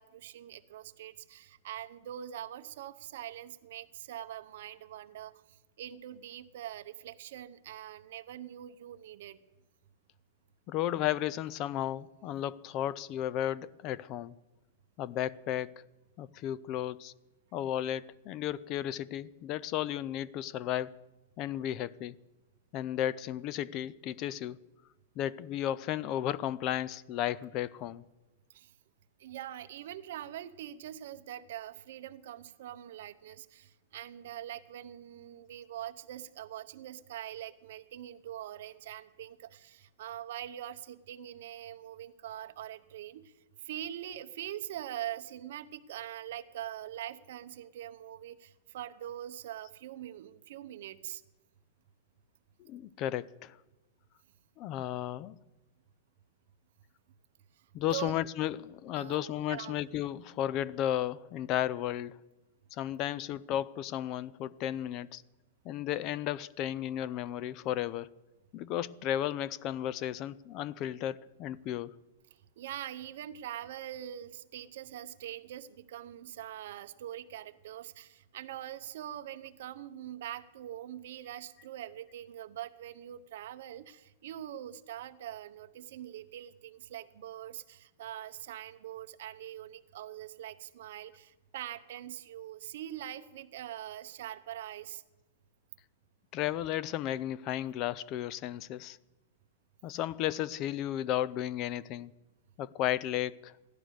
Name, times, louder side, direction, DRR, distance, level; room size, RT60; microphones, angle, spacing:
voice 1, 0.0-5.4 5.8-9.4 28.5-28.7 29.2-43.3 43.6-51.2 57.9-58.2 59.0-59.8 72.6-95.0, right 12 dB, 55° right, 0.8 m, -43 dB
voice 2, 10.7-14.3 15.0-15.7 16.2-17.1 17.5-20.9 21.4-22.1 22.7-24.6 25.2-28.0 52.6-53.6 54.6-55.4 57.7-62.2 62.7-65.2 65.6-68.1 68.5-71.9 96.3-99.0 99.8-102.1 102.6-103.5, left 12 dB, 30° left, 0.4 m, -34 dB
15.5 x 11.5 x 6.4 m
supercardioid pair, 170°, 0 cm